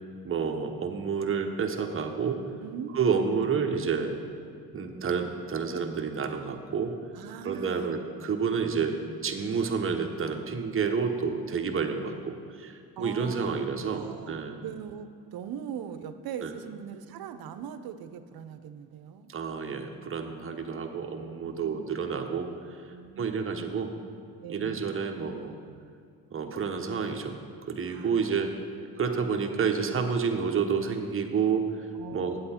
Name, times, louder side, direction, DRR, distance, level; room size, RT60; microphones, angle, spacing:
voice 1, 0.2-2.4 2.9-4.2 4.7-7.0 7.4-14.6 16.4-16.5 19.3-23.9 24.5-25.6 26.3-27.4 27.7-28.5 29.0-32.4, right 6 dB, 35° right, 4 dB, 1.0 m, -29 dB
voice 2, 2.6-3.5 7.1-7.9 13.0-19.3 21.4-22.0 22.9-23.8 24.4-25.0 27.8-28.5 31.9-32.4, right 8 dB, 65° right, 10 dB, 0.7 m, -41 dB
8.8 x 7.8 x 4.3 m, 2.4 s
cardioid pair, 75°, 39 cm